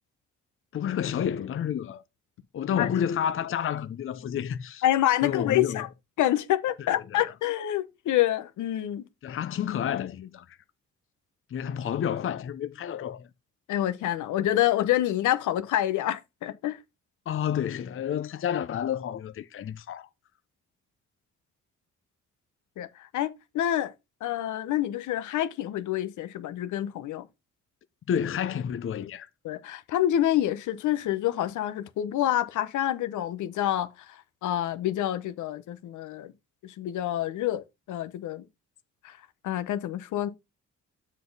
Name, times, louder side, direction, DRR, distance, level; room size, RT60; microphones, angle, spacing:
voice 1, 0.7-2.0 2.5-4.8 5.2-5.8 7.1-7.2 9.2-10.6 11.5-13.3 17.3-20.1 28.1-29.3, left 9 dB, 45° left, 0.6 m, -30 dB
voice 2, 4.8-5.9 6.2-9.0 13.7-16.8 22.8-23.9 24.2-27.3 29.4-36.3 36.6-38.5 39.0-39.2 39.4-40.3, left 12 dB, 80° left, 0.9 m, -27 dB
7.5 x 4.1 x 5.4 m
cardioid pair, 90°, 30 cm